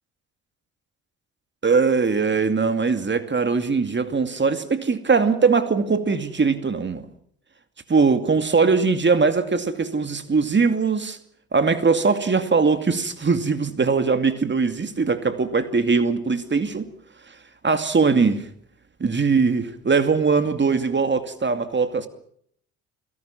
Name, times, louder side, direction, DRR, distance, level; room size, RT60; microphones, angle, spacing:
voice 1, 1.6-7.1 7.9-11.2 11.5-16.9 17.6-18.5 19.0-22.1, right 4 dB, 30° right, 2.5 m, -21 dB
29.5 x 17.5 x 5.9 m
hypercardioid pair, 55°, 36 cm